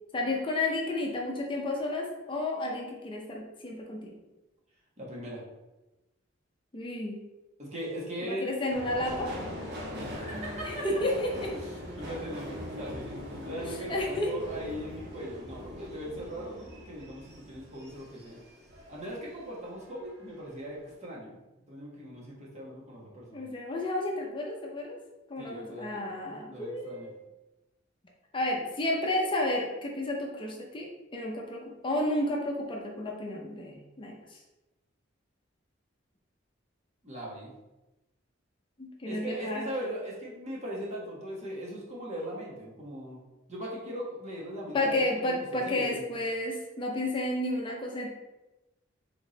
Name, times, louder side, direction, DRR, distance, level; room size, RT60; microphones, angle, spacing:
voice 1, 0.1-4.2 6.7-7.2 8.2-9.3 10.6-11.5 13.9-14.5 23.3-25.0 25.3-27.1 28.3-34.2 38.8-39.6 44.7-48.1, left 1 dB, 25° left, 0 dB, 0.6 m, -31 dB
voice 2, 5.0-5.4 7.6-8.5 10.0-10.9 11.5-11.7 11.9-13.2 13.4-18.4 18.9-21.4 21.7-23.4 25.4-26.0 26.5-27.1 37.0-37.5 39.0-43.2 43.5-46.0, equal, 35° right, -5 dB, 1.4 m, -39 dB
Subway metro underground, 8.7-19.4 19.8-20.5 20.8-20.9, left 1 dB, 60° right, 1.1 m, -41 dB
3.6 x 3.5 x 4.0 m, 1.0 s
head